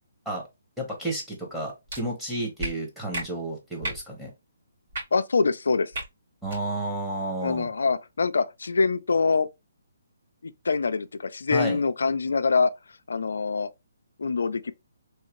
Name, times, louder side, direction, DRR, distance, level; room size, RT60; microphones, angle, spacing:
voice 1, 0.8-4.3 6.4-7.7 11.5-11.8, right 1 dB, ahead, 1.2 m, -31 dB
sound 1, 1.9-2.0 2.6-2.7 3.1-3.2 3.8-4.0 4.9-5.0 5.9-6.1 6.4-6.6, right 1 dB, 70° right, 2.1 m, -32 dB
voice 2, 5.1-5.9 7.4-9.5 10.4-12.7 13.1-13.7 14.2-14.7, left 4 dB, 75° left, 0.3 m, -24 dB
3.2 x 2.7 x 3.0 m
hypercardioid pair, 155°, 0 cm